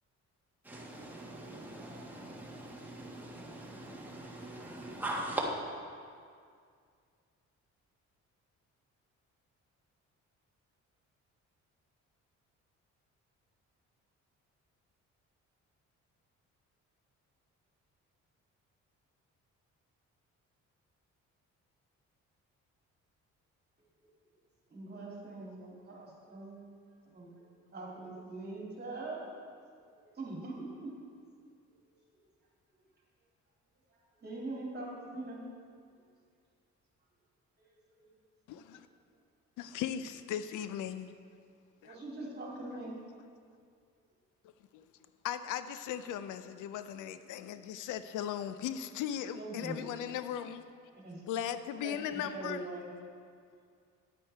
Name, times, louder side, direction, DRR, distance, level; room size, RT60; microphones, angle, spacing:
voice 1, 0.6-5.5, right 1 dB, 5° right, -3 dB, 1.5 m, -41 dB
voice 2, 24.7-26.7 27.1-27.3 27.7-29.3 29.9-30.9 32.7-32.8 33.9-35.4 36.0-36.1 37.6-37.7 38.0-38.1 41.8-42.9 49.3-49.8 50.9-51.2 51.8-52.9, right 2 dB, 35° right, -3 dB, 2.5 m, -43 dB
voice 3, 38.5-38.9 39.6-41.1 41.8-42.0 44.7-44.8 45.2-50.6 51.3-52.6, left 10 dB, 85° left, 11 dB, 0.5 m, -38 dB
9.5 x 8.5 x 3.4 m, 2.2 s
cardioid pair, 90°, 30 cm